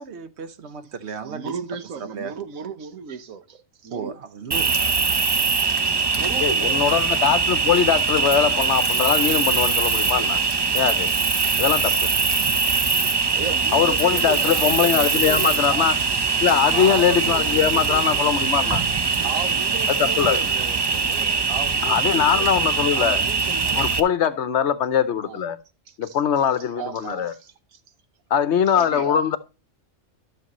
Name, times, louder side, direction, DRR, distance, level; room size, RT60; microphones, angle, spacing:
voice 1, 0.0-1.6 2.0-2.3 3.9-4.9, right 5 dB, 60° right, 1.0 m, -35 dB
voice 2, 1.3-4.1 5.1-7.1 10.2-10.8 11.4-11.6 11.8-12.0 13.3-15.9 16.7-18.3 19.1-22.5 22.9-23.9 25.2-25.4 26.0-26.2 26.7-27.8 28.7-29.2, right 7 dB, 85° right, 1.3 m, -35 dB
Cricket, 4.5-24.0, right 4 dB, 40° right, 0.3 m, -22 dB
voice 3, 6.4-10.4 10.7-11.1 11.6-12.1 13.7-16.0 16.4-18.8 19.9-20.4 21.8-23.2 23.7-25.6 26.0-27.3 28.3-29.4, left 8 dB, 65° left, 0.9 m, -21 dB
12.5 x 6.6 x 3.0 m
omnidirectional pair, 1.4 m